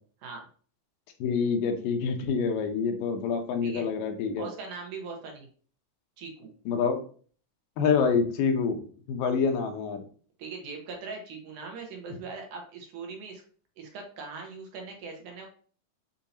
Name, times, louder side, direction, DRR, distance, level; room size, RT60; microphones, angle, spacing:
voice 1, 1.2-4.5 6.7-7.0 7.8-8.8 9.1-10.0, left 5 dB, 85° left, 5 dB, 2.4 m, -26 dB
voice 2, 4.4-5.5 6.2-6.5 10.4-13.4 13.8-15.5, right 4 dB, 75° right, 1 dB, 2.3 m, -40 dB
6.8 x 2.7 x 2.7 m, 0.43 s
omnidirectional pair, 3.9 m